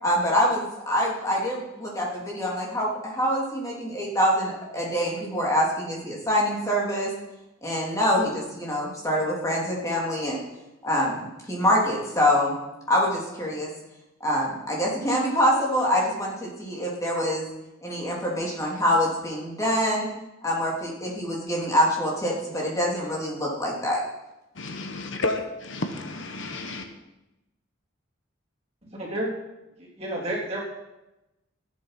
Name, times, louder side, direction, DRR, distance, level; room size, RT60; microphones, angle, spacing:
voice 1, 0.0-7.1 7.6-10.4 10.8-12.6 12.9-13.7 14.2-17.5 17.8-20.1 20.4-24.0, equal, 15° left, -4 dB, 3.1 m, -25 dB
voice 2, 24.5-26.9, left 2 dB, 65° left, 6 dB, 1.1 m, -31 dB
voice 3, 28.8-29.3 29.8-30.6, right 1 dB, 30° right, -5 dB, 3.5 m, -31 dB
14.5 x 8.4 x 5.9 m, 0.97 s
head